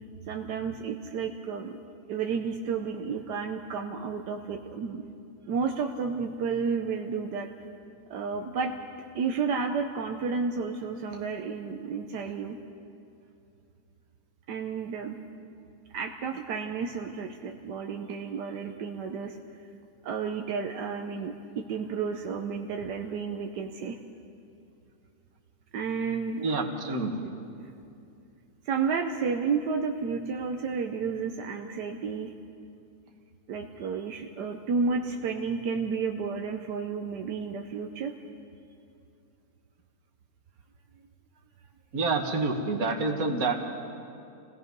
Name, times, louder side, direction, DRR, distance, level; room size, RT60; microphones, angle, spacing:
voice 1, 0.3-1.8 2.1-5.0 5.5-7.5 8.1-8.7 9.1-12.6 14.5-15.2 15.9-19.4 20.0-24.0 25.7-26.4 27.6-27.7 28.6-32.3 33.5-38.1, right 5 dB, 85° right, 4 dB, 1.5 m, -31 dB
voice 2, 26.4-27.3 41.9-43.6, right 3 dB, 60° right, 4 dB, 2.0 m, -28 dB
28.0 x 17.0 x 5.3 m, 2.6 s
omnidirectional pair, 1.7 m